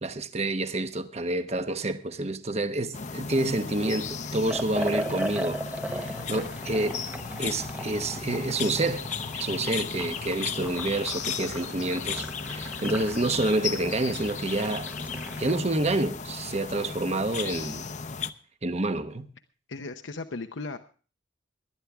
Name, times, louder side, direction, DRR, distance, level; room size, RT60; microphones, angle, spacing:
voice 1, 0.0-5.6 5.9-7.0 7.4-9.1 9.3-14.9 15.4-17.9 18.6-19.3, right 2 dB, 35° right, 1.0 m, -28 dB
sound 1, 2.9-18.3, left 5 dB, 40° left, 0.7 m, -35 dB
Liquid, 4.4-15.7, right 1 dB, 10° right, 0.8 m, -38 dB
voice 2, 6.2-6.5 19.7-20.8, left 3 dB, 80° left, 0.8 m, -37 dB
19.5 x 11.5 x 3.5 m
head